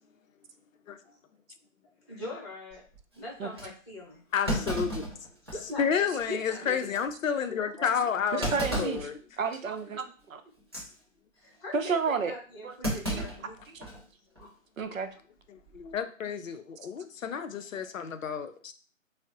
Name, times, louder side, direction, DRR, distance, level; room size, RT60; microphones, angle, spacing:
voice 1, 2.1-2.8 3.1-4.2 5.4-6.9 7.8-7.9 11.3-13.5 14.4-14.5, left 2 dB, 20° left, -4 dB, 0.9 m, -41 dB
Thump thud, 2.7-3.0 3.6-3.7 4.5-5.8 6.2-6.3 6.8-7.0 8.4-9.1 9.5-9.8 10.6-10.9 12.8-14.0 14.4-14.5 15.6-15.9, equal, 20° right, 0.5 m, -33 dB
voice 2, 4.3-5.0 5.8-9.2 14.9-15.0 15.5-18.7, left 7 dB, 75° left, 10 dB, 0.5 m, -31 dB
voice 3, 8.3-9.0 9.4-10.4 11.7-12.3 12.6-12.8 13.1-13.2 13.7-13.8 14.8-15.1, right 5 dB, 75° right, 8 dB, 0.6 m, -31 dB
3.5 x 2.0 x 2.6 m, 0.41 s
figure-of-eight pair, 145°, 40 cm